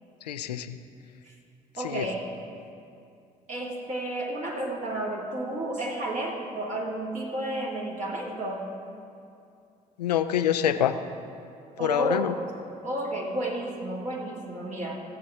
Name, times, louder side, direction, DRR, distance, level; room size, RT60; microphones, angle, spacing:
voice 1, 0.3-0.8 1.8-2.1 10.0-11.0 11.8-12.3, left 10 dB, 85° left, 10 dB, 0.4 m, -25 dB
voice 2, 1.8-2.3 3.5-8.7 11.8-12.4 12.8-15.0, right 1 dB, 40° right, -2 dB, 2.0 m, -32 dB
18.5 x 7.7 x 3.6 m, 2.5 s
figure-of-eight pair, 45°, 20 cm